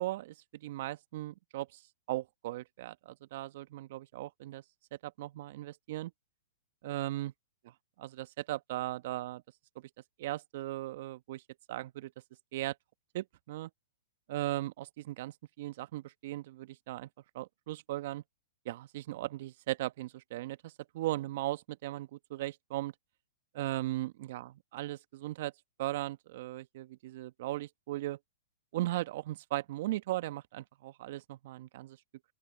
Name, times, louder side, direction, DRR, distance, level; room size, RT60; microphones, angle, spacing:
voice 1, 0.0-1.8 2.1-4.6 5.0-6.1 6.8-7.3 8.0-9.4 9.8-9.9 10.2-11.4 11.7-12.1 12.5-12.7 13.1-13.7 14.3-17.1 17.3-18.2 18.6-22.9 23.5-25.5 25.8-28.2 28.7-32.0, right 16 dB, 55° right, 1.2 m, -37 dB
open air
hypercardioid pair, 125°, 0 cm